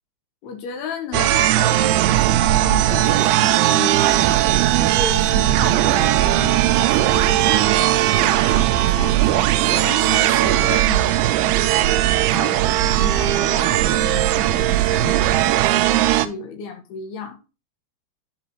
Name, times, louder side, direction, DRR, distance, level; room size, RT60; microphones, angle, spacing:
voice 1, 0.4-4.3 4.8-12.0 12.3-17.4, left 6 dB, 70° left, 5 dB, 3.2 m, -34 dB
sound 1, 1.1-16.3, right 14 dB, 80° right, 2.3 m, -18 dB
12.0 x 4.9 x 3.0 m, 0.31 s
omnidirectional pair, 5.0 m